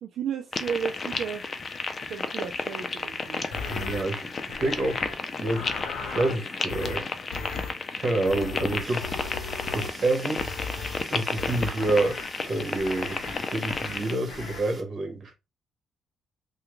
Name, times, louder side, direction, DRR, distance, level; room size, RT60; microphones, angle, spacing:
voice 1, 0.0-1.5 2.1-3.5, right 7 dB, 70° right, 0.5 m, -33 dB
sound 1, 0.5-14.1, left 4 dB, 35° left, 0.5 m, -33 dB
sound 2, 3.5-4.0 4.5-5.1 5.4-6.4 6.7-7.0 7.3-7.7 8.3-10.0 10.4-11.0 11.4-12.3 12.7-13.4 13.7-14.0 14.3-14.6, left 5 dB, 90° left, 0.7 m, -37 dB
voice 2, 3.7-5.1 5.4-5.7 6.0-7.0 8.0-9.1 9.7-10.5 11.1-15.3, right 2 dB, 50° right, 1.3 m, -28 dB
Fire, 8.8-14.8, right 2 dB, 20° right, 1.8 m, -45 dB
3.4 x 2.3 x 3.1 m
cardioid pair, 90°, 0 cm